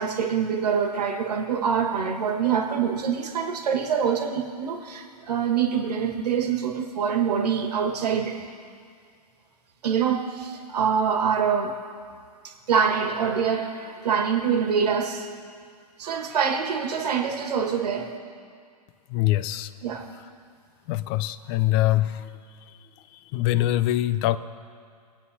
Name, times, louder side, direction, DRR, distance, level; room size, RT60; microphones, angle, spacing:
voice 1, 0.0-8.4 9.8-11.8 12.4-15.3 16.0-18.1 19.8-20.1, right 7 dB, 75° right, 3 dB, 1.7 m, -25 dB
voice 2, 19.1-19.7 20.9-22.2 23.3-24.4, left 15 dB, 35° left, 15 dB, 0.5 m, -23 dB
24.5 x 9.3 x 2.8 m, 2.2 s
hypercardioid pair, 125°, 21 cm